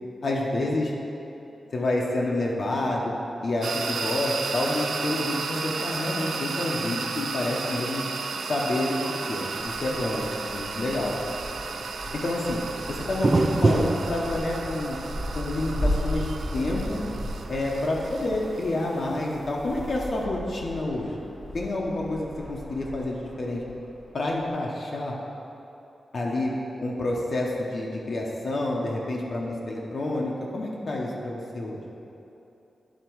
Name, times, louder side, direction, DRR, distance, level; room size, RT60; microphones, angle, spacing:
voice 1, 0.2-0.9 1.7-3.1 3.4-8.0 8.5-9.0 9.3-10.3 10.5-11.1 12.1-12.6 12.9-13.3 13.6-15.0 15.3-17.0 17.5-21.2 21.5-23.6 24.1-25.1 26.1-26.5 26.8-31.8, left 2 dB, 50° left, -2 dB, 0.8 m, -28 dB
sound 1, 3.6-20.2, right 4 dB, 90° right, 0.4 m, -34 dB
sound 2, 9.4-19.2, right 2 dB, 30° right, 0.4 m, -31 dB
Wind, 9.6-24.5, equal, 5° left, 1.2 m, -36 dB
10.0 x 4.3 x 4.5 m, 3.0 s
wide cardioid pair, 170°, 0 cm